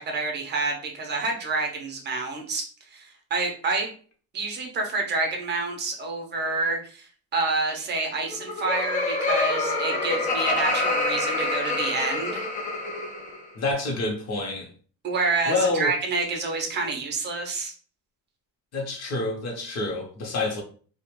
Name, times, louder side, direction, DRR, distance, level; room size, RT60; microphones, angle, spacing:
voice 1, 0.0-2.6 2.9-3.9 4.3-12.5 15.0-17.7, right 3 dB, 30° right, 0.6 m, -28 dB
Laughter, 8.2-13.4, left 2 dB, 20° left, 0.4 m, -26 dB
voice 2, 13.5-14.7 15.5-15.9 18.7-20.6, left 2 dB, 45° left, 0.8 m, -27 dB
2.3 x 2.1 x 2.9 m
cardioid pair, 165°, 35 cm